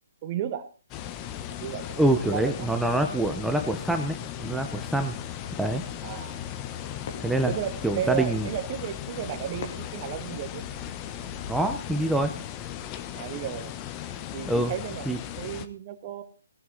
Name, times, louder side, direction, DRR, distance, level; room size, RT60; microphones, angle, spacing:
voice 1, 0.2-0.7 1.6-2.0 2.3-2.7 6.0-6.4 7.5-10.7 13.2-13.7 14.3-16.2, right 10 dB, 30° right, 9 dB, 1.8 m, -34 dB
sound 1, 0.9-15.7, left 11 dB, 20° left, 1.1 m, -37 dB
voice 2, 2.0-5.2 5.6-5.8 7.2-7.5 7.8-8.5 11.5-12.3 14.4-14.7 15.1-15.2, right 1 dB, ahead, 5 dB, 1.0 m, -25 dB
sound 2, 4.3-11.6, left 4 dB, 45° left, 3.3 m, -47 dB
18.0 x 11.0 x 4.1 m, 0.36 s
hypercardioid pair, 155°, 0 cm